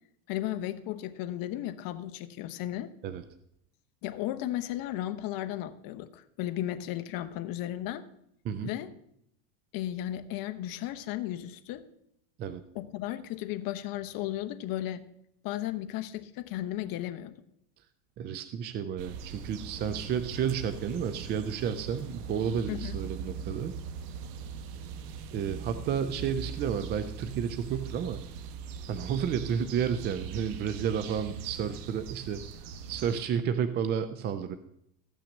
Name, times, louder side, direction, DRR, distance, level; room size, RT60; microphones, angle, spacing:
voice 1, 0.3-2.9 4.0-8.0 8.6-8.9 9.7-11.8 12.7-15.0 15.4-17.4 22.7-23.0, left 13 dB, 45° left, 11 dB, 1.0 m, -35 dB
voice 2, 18.2-23.7 25.3-28.2 28.9-32.4 32.9-34.6, right 8 dB, 25° right, 11 dB, 0.4 m, -31 dB
sound 1, 19.0-33.2, right 6 dB, 75° right, 1.3 m, -41 dB
14.0 x 6.0 x 7.2 m, 0.77 s
supercardioid pair, 125°, 48 cm